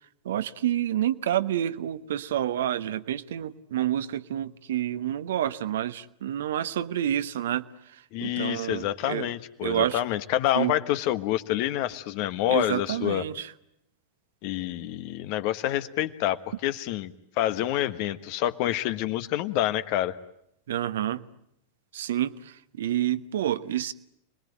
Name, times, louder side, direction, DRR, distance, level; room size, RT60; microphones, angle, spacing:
voice 1, 0.2-7.6 7.9-9.3 9.6-10.0 10.5-10.7 12.5-13.5 20.7-21.2 21.9-23.9, right 11 dB, 60° right, 12 dB, 1.1 m, -28 dB
voice 2, 8.1-13.2 14.4-20.1, left 13 dB, 45° left, 12 dB, 1.3 m, -27 dB
29.0 x 21.5 x 9.3 m, 0.78 s
figure-of-eight pair, 90°, 0 cm